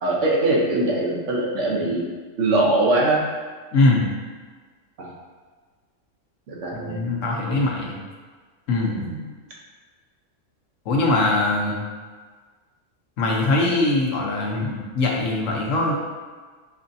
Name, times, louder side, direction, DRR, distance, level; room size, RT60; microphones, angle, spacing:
voice 1, 0.0-2.0 2.4-3.2 5.0-5.1 6.5-7.0 8.9-9.2, right 2 dB, 70° right, -3 dB, 1.1 m, -22 dB
voice 2, 3.7-4.0 6.7-8.0 8.7-9.1 10.9-11.8 13.2-15.9, left 2 dB, 90° left, -1 dB, 1.1 m, -22 dB
5.3 x 2.5 x 2.6 m, 1.4 s
omnidirectional pair, 1.3 m